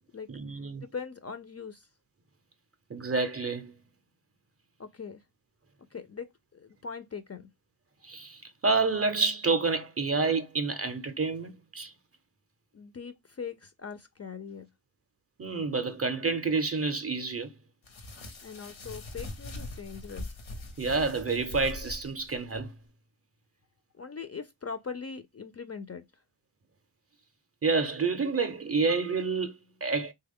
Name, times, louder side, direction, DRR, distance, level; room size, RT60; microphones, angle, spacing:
voice 1, 0.3-0.8 2.9-3.7 8.0-11.9 15.4-17.5 20.8-22.7 27.6-30.1, right 4 dB, 30° right, 0.5 m, -29 dB
voice 2, 0.8-1.9 4.8-5.2 5.9-7.5 12.7-14.7 18.4-20.3 24.0-26.0, left 5 dB, 35° left, 0.4 m, -41 dB
sound 1, 17.8-22.6, left 2 dB, 85° left, 0.9 m, -42 dB
3.2 x 2.2 x 3.5 m
wide cardioid pair, 75°, 46 cm